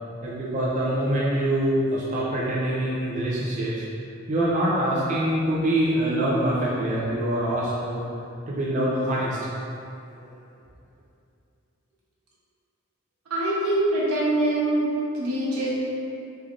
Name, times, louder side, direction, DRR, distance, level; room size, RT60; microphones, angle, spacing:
voice 1, 0.2-3.8 4.3-8.0 8.5-9.4 10.2-10.3, right 1 dB, 35° right, -7 dB, 0.4 m, -24 dB
voice 2, 13.3-15.7, right 1 dB, 90° right, -8 dB, 1.0 m, -24 dB
3.5 x 3.2 x 2.4 m, 2.6 s
head